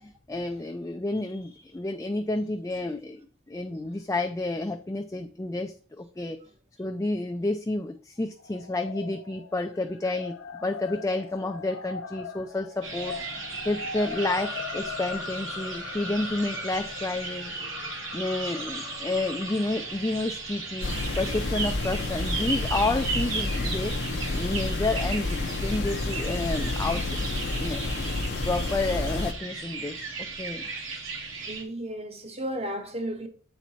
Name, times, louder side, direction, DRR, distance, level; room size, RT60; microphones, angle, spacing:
voice 1, 0.0-3.2 3.5-6.4 6.8-13.1 13.6-17.5 18.1-28.0 28.4-30.6, left 2 dB, 15° left, 0.4 m, -30 dB
sound 1, 8.4-20.8, left 5 dB, 75° left, 1.2 m, -40 dB
sound 2, 12.8-31.6, right 4 dB, 70° right, 2.0 m, -36 dB
sound 3, 20.8-29.3, left 2 dB, 55° left, 0.6 m, -30 dB
voice 2, 31.5-33.3, right 1 dB, 30° right, 1.0 m, -33 dB
8.0 x 4.5 x 4.1 m
head